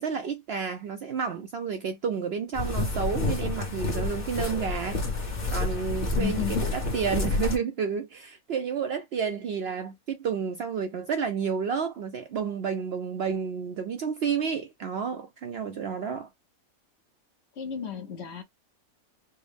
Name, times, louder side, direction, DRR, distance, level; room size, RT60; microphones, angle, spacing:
voice 1, 0.0-5.0 5.5-16.3, right 6 dB, 65° right, 0.6 m, -30 dB
sound 1, 2.5-7.6, left 2 dB, 35° left, 1.1 m, -29 dB
voice 2, 6.0-6.7 17.6-18.4, left 9 dB, 60° left, 0.8 m, -33 dB
4.5 x 2.0 x 3.4 m
omnidirectional pair, 1.5 m